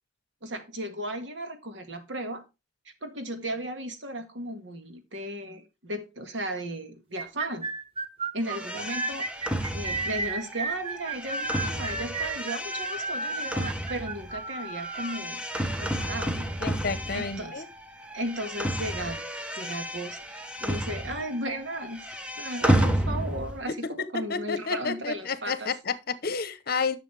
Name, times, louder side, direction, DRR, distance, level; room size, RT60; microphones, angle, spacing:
voice 1, 0.4-2.4 3.0-7.7 8.3-9.5 9.7-15.4 15.8-16.5 17.1-17.6 18.1-25.7, right 1 dB, 85° right, 1.9 m, -35 dB
sound 1, 7.2-15.2, right 3 dB, 30° right, 0.9 m, -33 dB
sound 2, 8.4-17.7 18.0-21.5 21.7-23.6, equal, 5° right, 0.9 m, -31 dB
voice 2, 16.6-17.7 23.7-27.0, left 5 dB, 55° left, 0.9 m, -31 dB
10.5 x 6.6 x 3.3 m
head